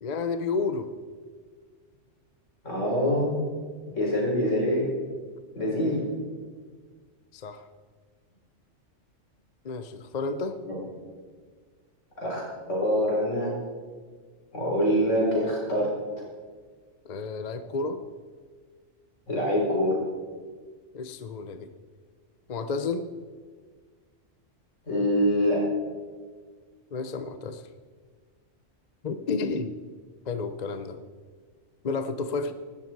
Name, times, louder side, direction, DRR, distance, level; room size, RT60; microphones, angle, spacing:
voice 1, 0.0-0.9 7.3-7.7 9.6-10.6 17.0-18.0 20.9-21.7 22.5-23.1 26.9-27.6 29.0-29.7 30.3-31.0 31.8-32.5, left 4 dB, 45° left, 10 dB, 0.7 m, -31 dB
voice 2, 2.6-3.3 3.9-4.9 5.6-6.0 10.7-10.8 12.2-12.4 12.7-13.5 14.5-15.9 19.3-20.0 24.9-25.6, equal, 75° left, -4 dB, 5.5 m, -24 dB
16.5 x 13.0 x 4.7 m, 1.5 s
omnidirectional pair, 1.3 m